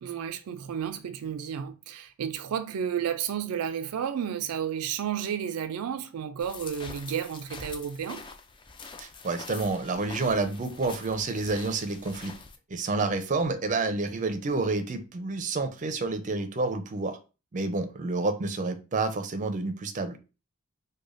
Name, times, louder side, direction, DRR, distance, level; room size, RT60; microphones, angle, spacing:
voice 1, 0.0-8.3, right 8 dB, 90° right, 0.4 m, -32 dB
sound 1, 6.4-12.6, left 4 dB, 20° left, 0.3 m, -45 dB
voice 2, 9.0-12.3 12.7-17.2 17.5-20.2, right 3 dB, 35° right, 0.5 m, -29 dB
4.9 x 2.2 x 2.5 m
head